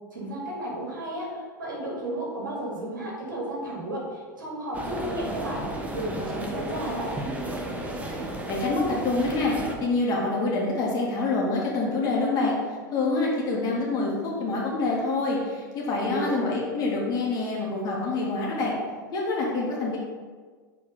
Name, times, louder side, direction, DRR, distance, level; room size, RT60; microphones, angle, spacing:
voice 1, 0.1-7.2 15.9-16.4, right 1 dB, 70° right, -3 dB, 2.3 m, -33 dB
sound 1, 4.7-9.7, right 1 dB, 15° right, 1.1 m, -33 dB
voice 2, 8.5-9.5 9.8-12.5 12.9-18.7 19.1-20.0, left 3 dB, 35° left, -4 dB, 2.3 m, -26 dB
7.1 x 4.6 x 5.4 m, 1.5 s
figure-of-eight pair, 85°, 11 cm